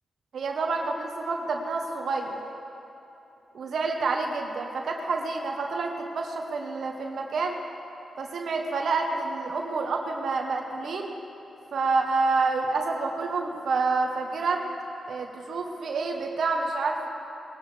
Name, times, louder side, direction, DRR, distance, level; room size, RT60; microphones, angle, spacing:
voice 1, 0.3-2.4 3.5-7.6 8.2-11.2 11.7-14.6 15.1-17.1, right 3 dB, 75° right, 2 dB, 1.1 m, -28 dB
20.5 x 11.0 x 3.4 m, 3.0 s
cardioid pair, 65°, 0 cm